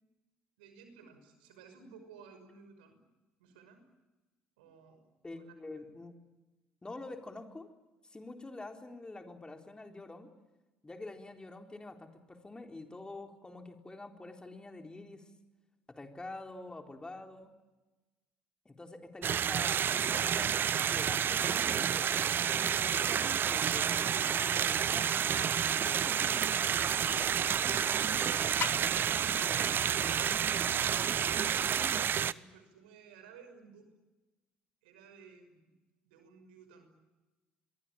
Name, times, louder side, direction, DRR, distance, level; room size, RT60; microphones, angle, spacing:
voice 1, 0.6-3.0 3.4-3.8 4.6-5.0 5.3-5.5 29.5-33.9 34.8-35.7 36.0-36.9, right 6 dB, 80° right, 8 dB, 5.9 m, -55 dB
voice 2, 5.2-6.2 6.8-7.7 8.0-10.3 10.8-15.2 15.9-17.5 18.7-25.1 25.7-26.4 28.8-28.9, left 2 dB, 15° left, 4 dB, 4.0 m, -47 dB
sound 1, 19.2-32.3, right 8 dB, 45° right, 0.9 m, -30 dB
sound 2, 26.7-31.8, left 9 dB, 50° left, 1.2 m, -46 dB
28.0 x 23.0 x 8.9 m, 1.1 s
hypercardioid pair, 60°, 5 cm